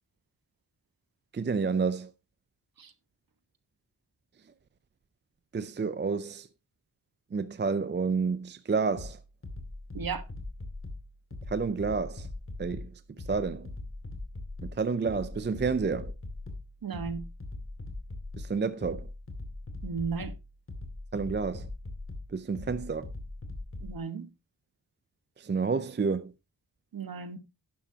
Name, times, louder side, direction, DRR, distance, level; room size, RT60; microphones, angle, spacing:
voice 1, 1.3-2.1 5.5-6.5 7.3-9.2 11.5-12.3 12.6-12.9 13.3-13.7 14.6-16.1 18.4-19.1 21.1-21.7 22.3-23.1 25.4-26.3, right 5 dB, 25° right, 0.5 m, -29 dB
sound 1, 9.0-24.0, left 2 dB, 30° left, 2.3 m, -41 dB
voice 2, 16.8-17.2 19.8-20.3 23.8-24.3 26.9-27.4, right 6 dB, 55° right, 1.3 m, -34 dB
11.0 x 11.0 x 2.8 m
wide cardioid pair, 155°, 42 cm